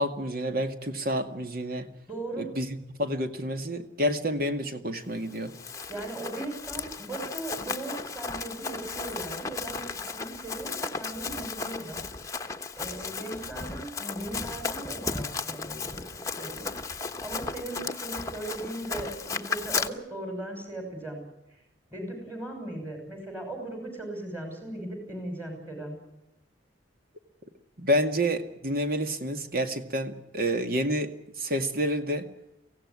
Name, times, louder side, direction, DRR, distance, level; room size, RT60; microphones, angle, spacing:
voice 1, 0.0-1.9 2.4-5.5 27.8-32.3, equal, 50° right, 7 dB, 2.2 m, -29 dB
voice 2, 2.1-2.5 5.9-9.8 10.1-12.0 12.7-15.8 16.4-16.7 17.2-21.2 21.9-26.0, right 2 dB, 15° right, 3 dB, 6.2 m, -38 dB
Run, 5.3-19.9, left 4 dB, 15° left, 1.1 m, -35 dB
24.5 x 17.0 x 9.8 m, 0.87 s
head